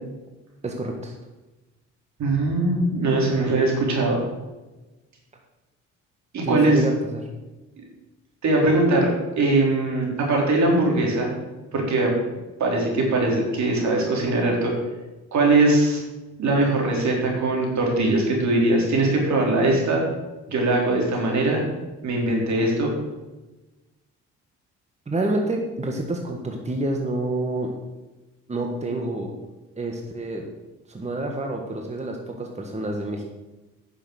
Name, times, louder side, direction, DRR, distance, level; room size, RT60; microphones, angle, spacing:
voice 1, 0.6-1.1 6.4-7.3 25.1-27.8 28.5-29.3 29.7-30.5 30.9-33.2, right 1 dB, 20° right, 2 dB, 1.6 m, -28 dB
voice 2, 2.2-4.2 6.3-6.8 8.4-11.3 11.7-12.1 12.6-14.7 15.3-16.0 16.4-20.0 20.5-21.6 22.0-22.9, right 2 dB, 65° right, -1 dB, 3.8 m, -21 dB
10.0 x 6.9 x 6.6 m, 1.1 s
cardioid pair, 90°, 30 cm